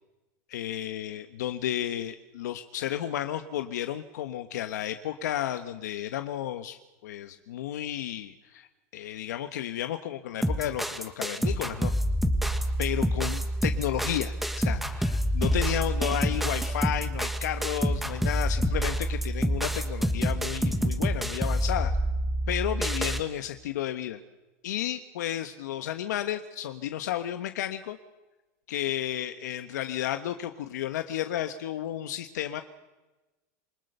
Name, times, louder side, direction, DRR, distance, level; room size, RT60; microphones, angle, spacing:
voice 1, 0.5-11.9 12.8-21.9 22.5-24.2 24.6-28.0 28.7-32.6, left 11 dB, 85° left, 8 dB, 1.3 m, -32 dB
sound 1, 10.4-23.2, equal, ahead, 1.6 m, -27 dB
28.0 x 20.5 x 6.8 m, 1.1 s
supercardioid pair, 145°, 9 cm